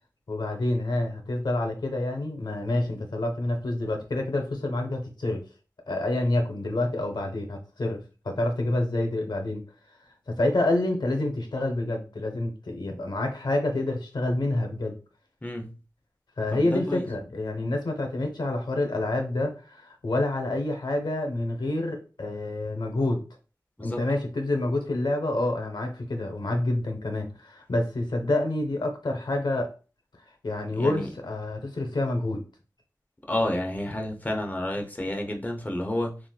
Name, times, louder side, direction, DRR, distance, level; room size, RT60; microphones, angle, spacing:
voice 1, 0.3-5.4 5.9-9.6 10.3-15.0 16.4-23.2 23.8-29.7 30.4-32.4, left 2 dB, 80° left, 4 dB, 0.7 m, -28 dB
voice 2, 15.4-15.7 16.5-17.0 23.8-24.1 30.8-31.1 33.3-36.2, left 1 dB, 25° left, 2 dB, 0.7 m, -30 dB
3.6 x 2.4 x 2.3 m, 0.34 s
wide cardioid pair, 55°, 7 cm